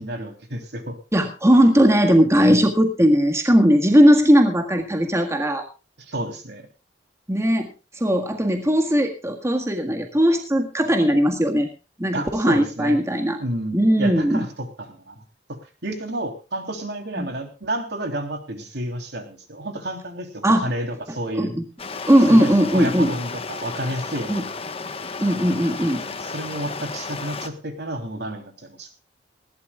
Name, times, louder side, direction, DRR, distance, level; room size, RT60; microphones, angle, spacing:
voice 1, 0.0-1.0 2.5-2.7 6.1-6.6 12.1-13.0 13.4-15.2 15.5-21.5 22.2-24.3 26.0-28.9, right 1 dB, 65° right, 5 dB, 3.4 m, -31 dB
voice 2, 1.1-5.7 7.3-7.7 8.0-11.7 12.0-13.4 13.7-14.5 17.2-17.3 20.4-20.7 21.4-21.6 22.1-23.1 24.3-24.5 25.2-26.0, equal, 15° right, 4 dB, 1.7 m, -18 dB
Stream, 21.8-27.5, left 4 dB, 35° left, 1.3 m, -33 dB
20.0 x 16.0 x 2.4 m, 0.32 s
head